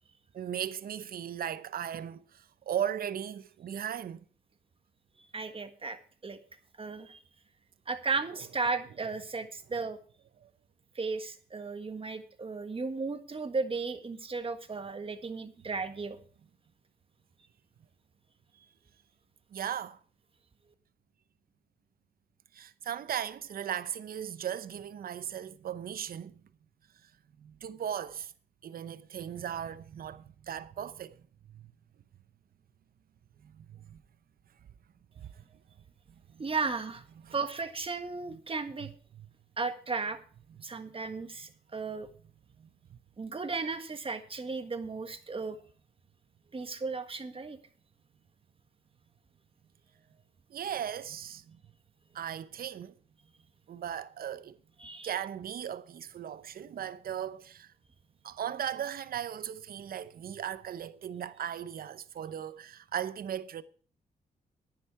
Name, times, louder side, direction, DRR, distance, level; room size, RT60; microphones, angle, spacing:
voice 1, 0.3-4.2 10.4-10.5 19.5-20.0 22.5-26.4 27.4-28.3 28.6-31.2 31.5-31.6 33.4-34.0 35.2-35.3 36.3-36.4 37.2-37.3 38.3-38.4 38.8-38.9 39.2-39.3 50.5-51.6 52.1-53.0 53.7-54.6 55.0-57.7 58.2-63.6, right 9 dB, 65° right, 0.8 m, -37 dB
voice 2, 5.3-6.0 6.2-6.4 6.8-7.2 7.9-10.0 10.9-16.2 36.4-37.0 37.3-38.9 39.6-40.2 40.6-42.1 43.2-45.6 46.5-47.6 54.8-55.1, right 4 dB, 35° right, 1.6 m, -35 dB
10.5 x 10.0 x 4.7 m
cardioid pair, 70°, 16 cm